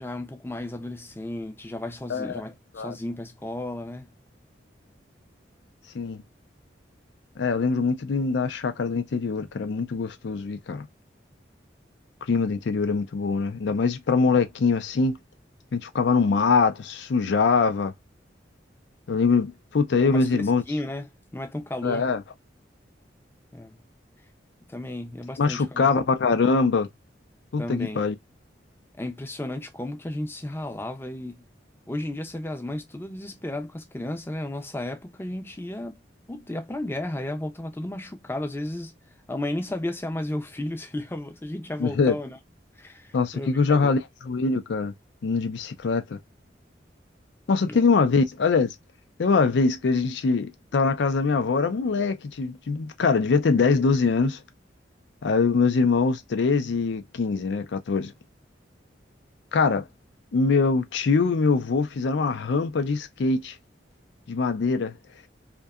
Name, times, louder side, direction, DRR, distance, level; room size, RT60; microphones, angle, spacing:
voice 1, 0.0-4.1 20.0-22.1 23.5-23.8 24.7-25.9 27.6-28.1 29.0-31.4 31.9-36.0 36.3-39.0 39.3-42.4 42.8-44.0 47.6-47.8, left 1 dB, 10° left, 0.4 m, -34 dB
voice 2, 7.4-10.9 12.3-15.2 15.7-17.9 19.1-20.6 21.8-22.2 25.4-26.9 27.5-28.1 41.8-42.1 43.1-44.9 45.2-46.2 47.5-48.7 49.2-54.4 55.2-58.1 59.5-59.9 60.3-63.5 64.3-65.0, left 4 dB, 75° left, 0.4 m, -23 dB
2.7 x 2.2 x 2.3 m
head